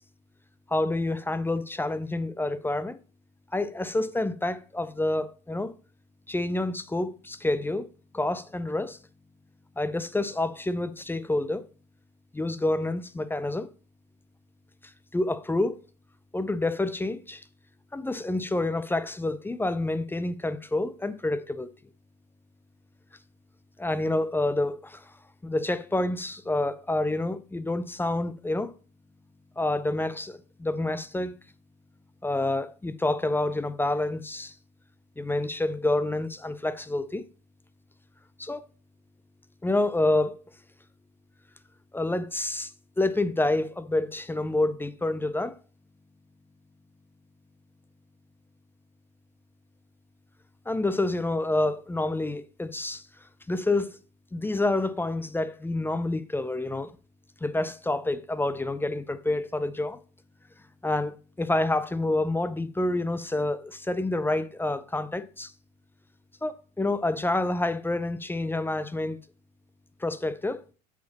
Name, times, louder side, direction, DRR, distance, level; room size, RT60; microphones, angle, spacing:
voice 1, 0.7-3.0 3.5-5.7 6.3-9.0 9.8-11.7 12.3-13.7 15.1-15.8 16.3-17.4 17.9-21.7 23.8-25.1 25.4-28.7 29.6-31.3 32.2-34.5 35.2-37.2 38.4-38.6 39.6-40.3 41.9-42.7 43.0-45.6 50.7-53.0 53.5-54.0 54.3-56.9 57.4-60.0 60.8-65.5 66.4-69.2 70.0-70.6, left 2 dB, 10° left, 0.6 m, -28 dB
8.2 x 4.8 x 4.1 m
hypercardioid pair, 80°, 21 cm